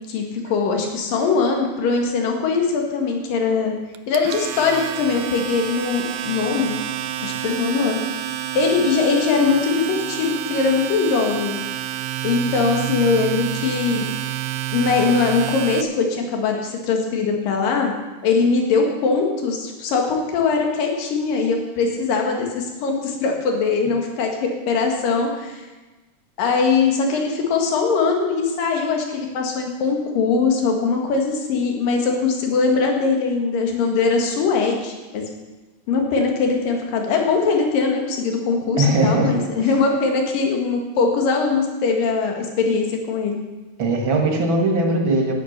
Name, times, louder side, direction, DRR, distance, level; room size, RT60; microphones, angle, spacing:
voice 1, 0.1-3.7 4.1-6.7 7.2-8.0 8.5-11.6 12.2-14.1 14.7-17.9 18.2-25.6 26.4-35.2 35.9-43.4, left 4 dB, 75° left, 2 dB, 3.5 m, -21 dB
Domestic sounds home sounds, 3.9-15.8, right 12 dB, 75° right, 1.9 m, -29 dB
voice 2, 38.8-39.4 43.8-45.3, right 2 dB, 45° right, 2 dB, 2.0 m, -19 dB
12.5 x 10.5 x 6.6 m, 1.2 s
omnidirectional pair, 4.0 m